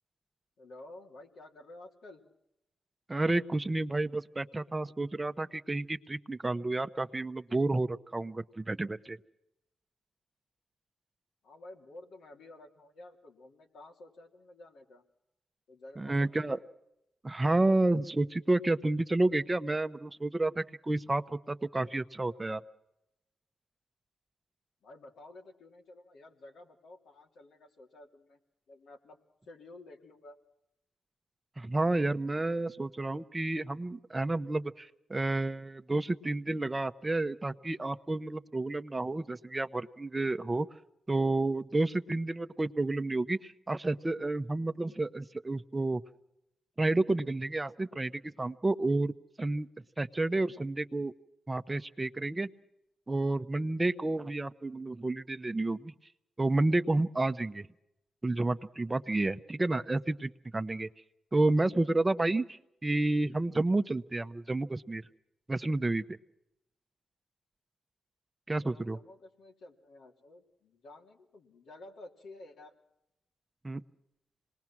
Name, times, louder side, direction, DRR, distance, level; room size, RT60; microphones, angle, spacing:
voice 1, 0.6-2.2 11.4-15.0 15.7-16.6 24.8-28.4 28.7-29.2 29.4-30.4 68.6-72.7, left 2 dB, 80° left, 1 dB, 3.2 m, -52 dB
voice 2, 3.1-9.2 16.0-16.6 17.2-22.6 31.6-40.7 41.1-46.0 46.8-49.7 50.0-51.1 51.5-52.5 53.1-55.9 56.4-57.7 58.2-60.9 61.3-65.0 65.5-66.2 68.5-69.0 73.6-73.8, right 2 dB, 25° right, 11 dB, 0.9 m, -30 dB
26.5 x 20.5 x 6.1 m, 0.83 s
supercardioid pair, 55°, 0 cm